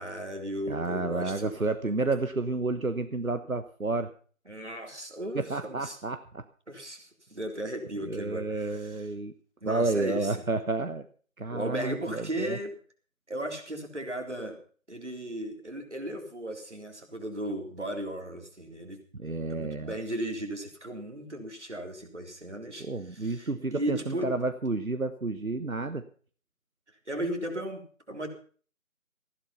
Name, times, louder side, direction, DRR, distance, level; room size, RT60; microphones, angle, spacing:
voice 1, 0.0-1.5 4.5-6.0 6.7-8.9 9.6-10.4 11.5-12.7 13.3-14.6 14.9-19.0 19.5-22.9 23.1-24.3 27.1-28.3, right 1 dB, 60° right, 4 dB, 3.8 m, -36 dB
voice 2, 0.7-4.1 5.3-6.4 8.1-9.3 9.6-11.1 11.4-12.6 19.1-19.9 22.8-26.0, right 3 dB, 90° right, 10 dB, 1.3 m, -31 dB
15.5 x 11.5 x 5.5 m, 0.43 s
figure-of-eight pair, 170°, 40 cm